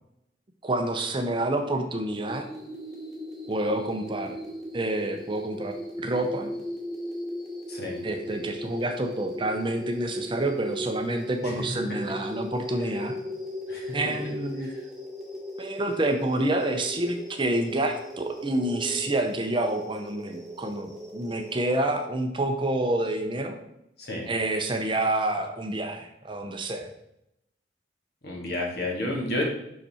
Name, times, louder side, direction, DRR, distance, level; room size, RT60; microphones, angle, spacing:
voice 1, 0.6-2.5 3.5-4.4 4.7-6.5 8.0-13.2 13.9-14.7 15.6-23.6 24.3-26.9, right 1 dB, 25° right, 5 dB, 0.6 m, -28 dB
sound 1, 2.1-21.6, equal, ahead, 1.6 m, -37 dB
voice 2, 7.7-8.0 11.4-11.5 13.7-14.0 24.0-24.3 28.2-29.4, left 1 dB, 60° left, -1 dB, 1.8 m, -31 dB
5.8 x 5.4 x 4.2 m, 0.81 s
head